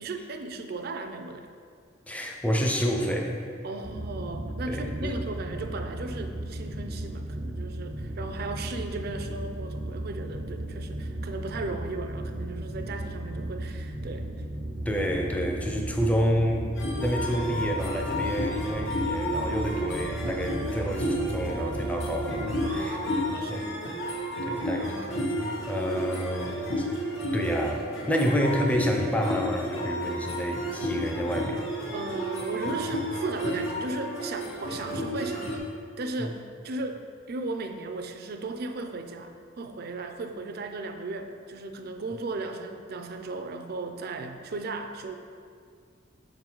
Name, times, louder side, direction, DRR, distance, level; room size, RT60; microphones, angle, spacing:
voice 1, 0.0-1.5 3.6-14.3 22.6-23.7 31.9-35.6 36.0-45.2, right 3 dB, 50° right, 6 dB, 0.4 m, -36 dB
voice 2, 2.1-3.4 4.7-5.1 14.9-23.0 23.5-23.7 24.4-26.9 27.3-31.7 36.2-36.3, equal, 5° left, 2 dB, 0.5 m, -29 dB
sound 1, 3.8-22.7, right 1 dB, 90° right, 0.9 m, -35 dB
sound 2, 16.7-35.6, equal, 80° left, 1.0 m, -32 dB
6.6 x 3.9 x 4.4 m, 2.2 s
head